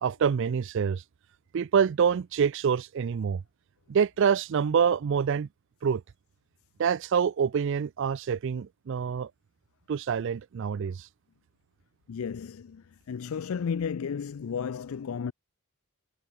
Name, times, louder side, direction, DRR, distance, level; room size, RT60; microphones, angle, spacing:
voice 1, 0.0-1.0 1.5-3.4 3.9-5.5 5.8-6.0 6.8-9.3 9.9-11.1, right 7 dB, 55° right, 0.3 m, -26 dB
voice 2, 12.1-15.3, left 6 dB, 70° left, 0.4 m, -33 dB
head